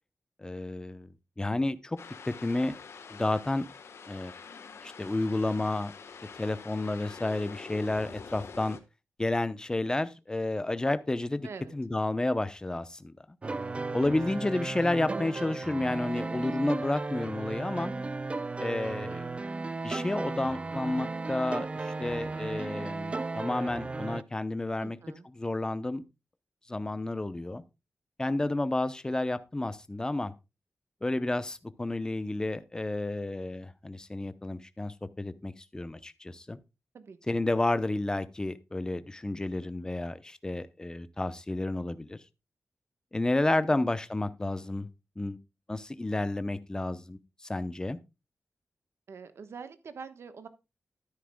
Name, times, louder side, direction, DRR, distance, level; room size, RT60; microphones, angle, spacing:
voice 1, 0.4-1.1 1.4-2.0 2.3-2.8 3.1-3.7 4.1-4.3 4.8-5.9 6.4-8.8 9.2-13.1 13.9-17.9 18.6-19.3 19.8-25.0 25.3-26.0 26.7-27.6 28.2-30.3 31.0-36.6 37.3-42.2 43.1-44.9 45.2-45.4 45.7-47.2 47.5-48.0, left 2 dB, 15° left, 0.7 m, -31 dB
sound 1, 2.0-8.8, left 5 dB, 80° left, 1.2 m, -46 dB
sound 2, 13.4-24.2, right 3 dB, 25° right, 0.4 m, -35 dB
voice 2, 24.8-25.3 36.9-37.4 49.1-50.5, right 5 dB, 75° right, 1.1 m, -45 dB
13.0 x 9.9 x 2.2 m
wide cardioid pair, 145°, 4 cm